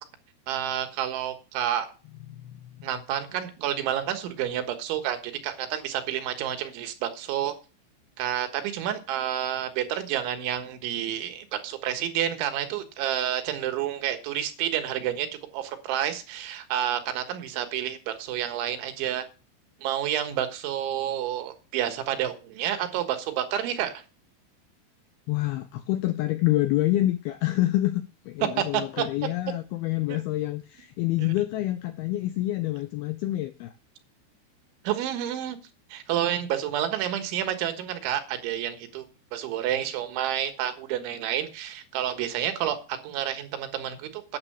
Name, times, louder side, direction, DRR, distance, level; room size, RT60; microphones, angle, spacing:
voice 1, 0.5-1.9 2.8-7.6 8.2-15.3 15.5-19.3 19.8-24.0 28.6-29.1 30.1-30.2 31.2-31.3 34.9-35.6 35.9-39.1 39.3-44.4, right 10 dB, 85° right, 3.8 m, -29 dB
voice 2, 25.3-33.7, left 16 dB, 90° left, 2.2 m, -27 dB
9.7 x 7.4 x 6.8 m
omnidirectional pair, 5.3 m